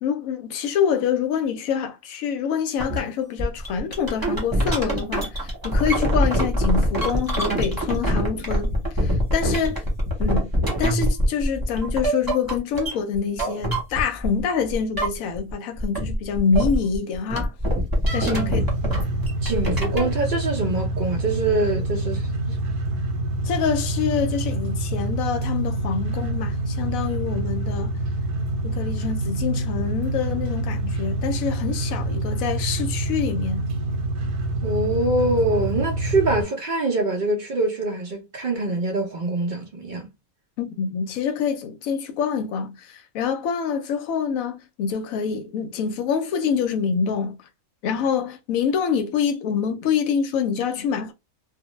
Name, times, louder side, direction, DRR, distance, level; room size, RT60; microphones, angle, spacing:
voice 1, 0.0-9.8 10.2-17.5 18.1-18.7 23.4-28.0 28.6-33.7 40.6-47.4 47.8-51.1, left 7 dB, 75° left, 1.0 m, -26 dB
sound 1, 2.8-3.0 3.4-14.4 14.7-15.5 15.8-20.1, equal, 20° right, 0.7 m, -24 dB
sound 2, 18.1-36.4, right 2 dB, 85° right, 1.1 m, -26 dB
voice 2, 18.2-18.5 19.4-22.6 34.6-40.1, right 2 dB, 65° right, 0.4 m, -24 dB
2.4 x 2.1 x 3.0 m
omnidirectional pair, 1.5 m